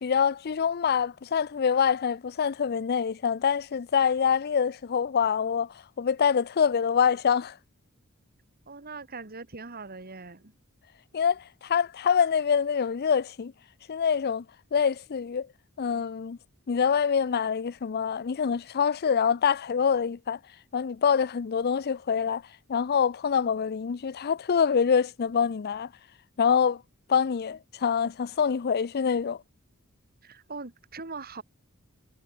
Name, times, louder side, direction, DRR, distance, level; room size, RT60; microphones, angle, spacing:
voice 1, 0.0-5.7 6.0-7.6 11.1-13.5 13.9-14.4 14.7-15.5 15.8-16.4 16.7-20.4 20.7-22.4 22.7-25.9 26.4-26.8 27.1-29.4, left 7 dB, 45° left, 0.5 m, -25 dB
voice 2, 8.7-10.5 30.2-31.4, right 4 dB, 45° right, 2.6 m, -41 dB
head